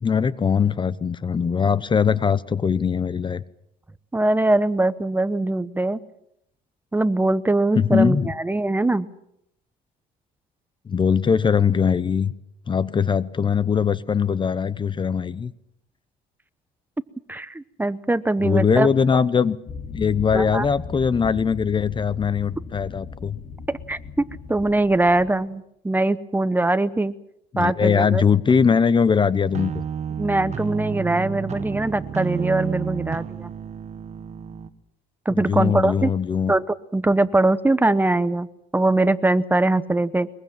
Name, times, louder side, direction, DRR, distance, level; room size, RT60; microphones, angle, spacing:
voice 1, 0.0-3.4 7.8-8.3 10.9-12.3 12.7-15.5 18.4-19.6 19.9-23.4 27.5-29.8 35.3-36.6, left 6 dB, 30° left, 17 dB, 0.8 m, -21 dB
voice 2, 4.1-6.0 6.9-9.1 17.3-18.9 20.3-20.7 23.7-27.1 27.6-28.2 30.2-33.5 35.2-36.1 36.5-38.5 38.7-40.3, right 2 dB, 10° right, 14 dB, 0.9 m, -22 dB
sound 1, 19.7-25.3, left 5 dB, 50° left, 3.6 m, -37 dB
sound 2, 29.5-34.7, right 7 dB, 40° right, 1.5 m, -31 dB
23.0 x 22.5 x 7.5 m, 0.78 s
cardioid pair, 110°, 17 cm